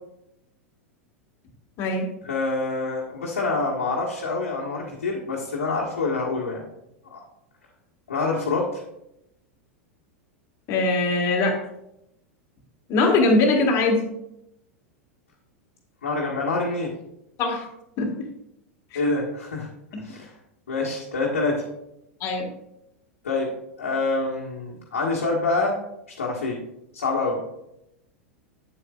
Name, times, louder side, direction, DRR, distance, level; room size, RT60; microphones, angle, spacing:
voice 1, 2.2-6.6 7.1-7.2 8.1-8.8 16.0-16.9 18.9-20.3 20.7-21.6 23.2-23.5 23.8-25.8 26.2-26.6 26.9-27.4, left 3 dB, 70° left, -5 dB, 1.4 m, -26 dB
voice 2, 10.7-11.5 12.9-14.0 17.4-17.7 18.0-18.1 18.9-19.0 22.2-22.5, left 2 dB, 40° left, 0 dB, 1.6 m, -21 dB
8.4 x 8.0 x 2.4 m, 0.83 s
figure-of-eight pair, 90°, 7 cm